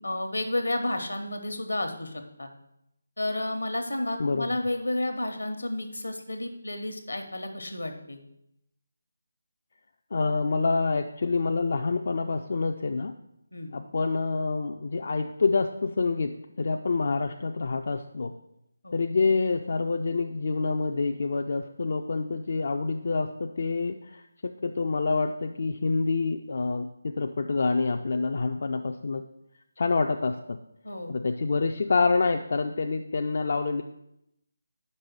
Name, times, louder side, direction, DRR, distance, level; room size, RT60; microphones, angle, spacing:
voice 1, 0.0-2.5 3.2-8.2 13.5-13.7 18.8-19.0 30.8-31.1, left 1 dB, 80° left, 6 dB, 1.0 m, -31 dB
voice 2, 4.2-4.6 10.1-13.1 13.7-18.3 18.9-24.2 24.6-29.3 29.8-30.6 31.1-33.8, left 4 dB, 50° left, 5 dB, 0.3 m, -27 dB
5.4 x 5.0 x 6.0 m, 0.80 s
figure-of-eight pair, 155°, 0 cm